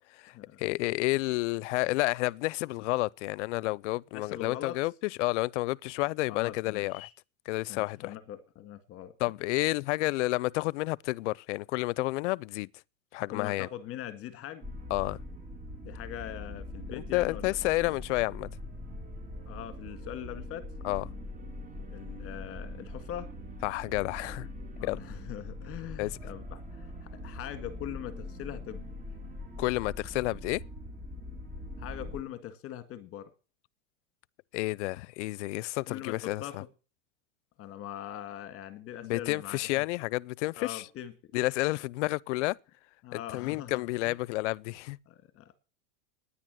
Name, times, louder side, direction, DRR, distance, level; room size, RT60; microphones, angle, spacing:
voice 1, 0.6-7.1 7.5-8.1 9.2-12.7 13.1-13.7 14.9-15.2 17.1-18.5 20.8-21.1 23.6-24.5 24.8-25.0 26.0-26.1 29.6-30.6 34.5-36.6 39.0-40.8 41.3-42.6 43.1-45.0, left 20 dB, 70° left, 0.5 m, -30 dB
voice 2, 4.1-4.8 6.3-7.1 7.7-9.1 13.3-14.6 15.8-17.7 19.5-20.7 21.9-23.3 24.7-28.8 31.8-33.3 35.9-36.7 37.6-39.8 40.6-41.1 43.0-44.2 45.1-45.5, left 11 dB, 35° left, 1.9 m, -42 dB
sound 1, 14.6-32.2, left 1 dB, 20° right, 2.5 m, -42 dB
10.0 x 9.9 x 7.6 m
supercardioid pair, 125°, 37 cm